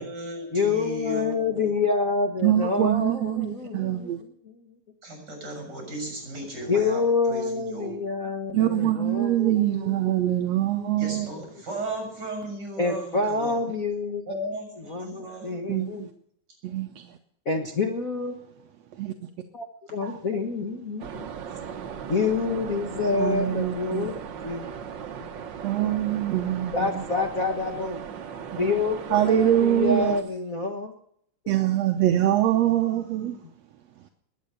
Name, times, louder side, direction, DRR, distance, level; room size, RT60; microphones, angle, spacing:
voice 1, 0.0-1.7 5.0-7.0 7.3-7.9 11.0-13.6 14.3-15.5 32.6-33.4, right 1 dB, 25° right, 7.2 m, -36 dB
voice 2, 0.5-4.6 6.7-10.0 10.8-11.2 12.8-14.2 14.8-16.1 17.4-18.3 19.5-21.3 22.1-24.7 25.2-25.3 26.7-28.0 28.5-30.9, left 4 dB, 90° left, 0.7 m, -27 dB
voice 3, 2.4-4.2 8.5-11.3 15.7-16.1 16.6-17.1 19.0-19.1 20.0-20.2 23.1-24.1 25.6-27.0 29.1-30.1 31.5-33.4, right 12 dB, 70° right, 1.6 m, -24 dB
sound 1, 21.0-30.2, right 7 dB, 85° right, 1.0 m, -37 dB
20.5 x 9.6 x 6.8 m
omnidirectional pair, 4.0 m